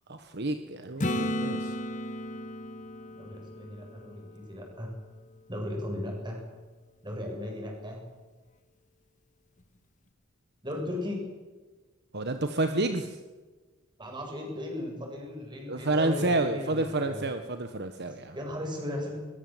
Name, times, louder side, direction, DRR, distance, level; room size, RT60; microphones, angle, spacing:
voice 1, 0.1-1.7 12.1-13.2 15.7-18.3, right 2 dB, 50° right, 7 dB, 1.4 m, -29 dB
Acoustic guitar / Strum, 1.0-4.8 9.6-9.7, equal, 35° left, 1.8 m, -34 dB
voice 2, 3.2-4.9 5.5-6.4 7.0-8.0 10.6-11.3 14.0-17.3 18.3-19.2, left 1 dB, 20° right, 1 dB, 7.8 m, -36 dB
22.5 x 22.0 x 8.1 m, 1.3 s
head